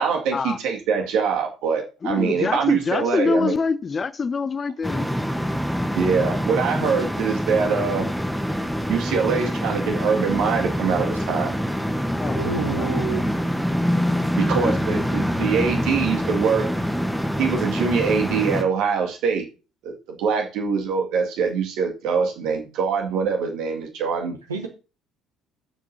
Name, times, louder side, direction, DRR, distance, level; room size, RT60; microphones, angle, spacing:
voice 1, 0.0-3.5 5.9-8.1 8.9-11.6 14.4-16.7 17.4-19.5 19.8-24.3, right 6 dB, 60° right, 2.1 m, -23 dB
voice 2, 2.0-5.0 12.2-12.5 12.8-12.9 14.6-15.0, left 4 dB, 30° left, 0.5 m, -25 dB
sound 1, 4.8-18.6, equal, ahead, 1.1 m, -25 dB
voice 3, 12.3-13.3 14.9-15.0 24.5-24.7, right 5 dB, 80° right, 1.3 m, -29 dB
15.0 x 7.3 x 2.8 m
figure-of-eight pair, 55°, 0 cm